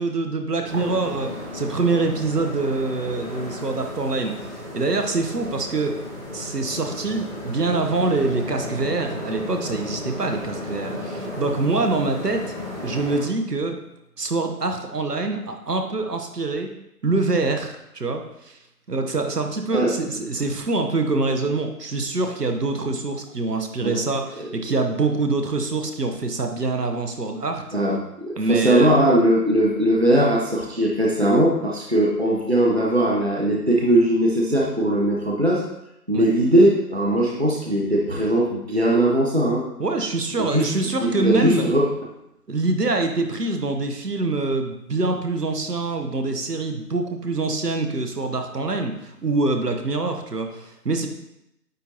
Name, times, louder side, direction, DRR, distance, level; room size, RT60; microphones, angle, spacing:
voice 1, 0.0-6.0 6.3-12.5 12.8-13.8 14.2-16.7 17.0-18.6 18.9-27.6 28.4-28.9 36.1-36.3 39.8-41.7 42.5-51.1, right 3 dB, 75° right, 5 dB, 1.0 m, -25 dB
sound 1, 0.6-13.2, left 1 dB, ahead, 1.1 m, -34 dB
voice 2, 27.7-35.6 36.1-39.7 40.5-40.7 41.0-41.9, right 1 dB, 40° right, -2 dB, 0.6 m, -20 dB
9.1 x 3.9 x 2.9 m, 0.84 s
figure-of-eight pair, 180°, 48 cm